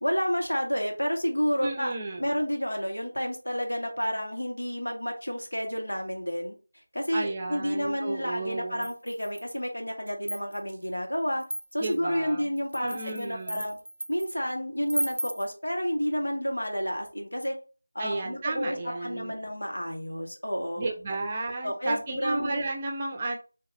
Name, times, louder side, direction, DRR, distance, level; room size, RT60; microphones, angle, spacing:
voice 1, 0.0-1.9 2.2-6.6 6.9-11.4 11.7-13.8 14.1-17.6 18.0-20.9 21.6-22.6, equal, 80° left, 1 dB, 1.7 m, -30 dB
voice 2, 1.6-2.4 7.1-8.9 11.8-12.5 12.8-13.6 18.0-19.3 20.8-23.4, right 2 dB, 20° right, 2 dB, 0.6 m, -33 dB
sound 1, 8.8-9.6 10.1-10.8 11.4-12.0 12.6-14.3 14.9-15.5, right 1 dB, 70° right, 0.4 m, -34 dB
4.7 x 2.9 x 3.0 m, 0.34 s
figure-of-eight pair, 170°, 0 cm